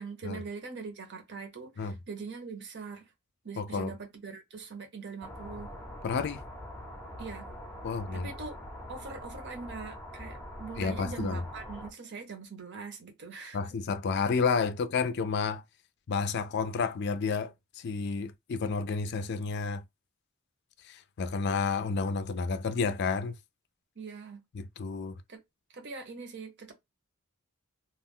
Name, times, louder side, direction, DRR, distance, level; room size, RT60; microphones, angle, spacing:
voice 1, 0.0-3.1 3.4-5.7 7.2-7.5 8.1-8.5 8.9-13.6 23.9-24.4 25.3-25.4 25.7-26.7, right 4 dB, 55° right, 0.9 m, -42 dB
voice 2, 3.6-3.9 6.0-6.4 7.8-8.3 10.8-11.4 13.5-15.6 16.1-19.8 20.8-23.4 24.5-25.2, left 5 dB, 50° left, 0.4 m, -31 dB
sound 1, 5.2-11.9, left 1 dB, 5° left, 0.6 m, -44 dB
2.4 x 2.2 x 3.6 m
head